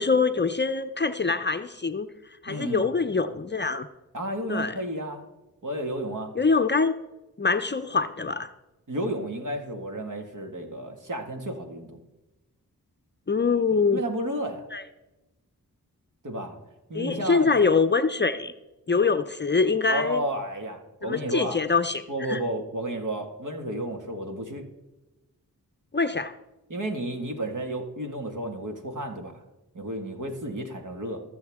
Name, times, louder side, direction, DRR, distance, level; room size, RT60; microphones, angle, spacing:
voice 1, 0.0-2.1 2.4-3.9 4.5-4.7 6.4-6.9 7.4-8.5 13.3-14.0 14.7-14.8 16.9-18.5 18.9-20.2 21.0-22.0 22.3-22.4 25.9-26.3, left 4 dB, 30° left, 10 dB, 0.6 m, -24 dB
voice 2, 2.5-2.8 4.1-5.3 5.6-6.3 8.9-12.0 13.9-14.7 16.2-16.6 16.9-17.5 19.9-21.6 22.1-24.7 26.7-29.4 29.7-31.2, right 1 dB, 55° right, 4 dB, 2.0 m, -32 dB
21.5 x 7.2 x 3.6 m, 1.0 s
cardioid pair, 45°, 37 cm